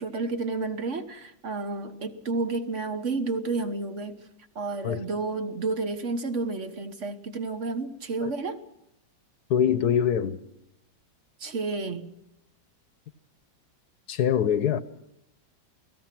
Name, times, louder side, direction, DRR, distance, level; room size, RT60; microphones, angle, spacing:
voice 1, 0.0-4.2 4.5-8.6 11.4-12.1, right 3 dB, 45° right, 1.4 m, -31 dB
voice 2, 9.5-10.4 14.1-14.8, left 8 dB, 60° left, 1.4 m, -23 dB
29.0 x 18.0 x 6.0 m
omnidirectional pair, 2.0 m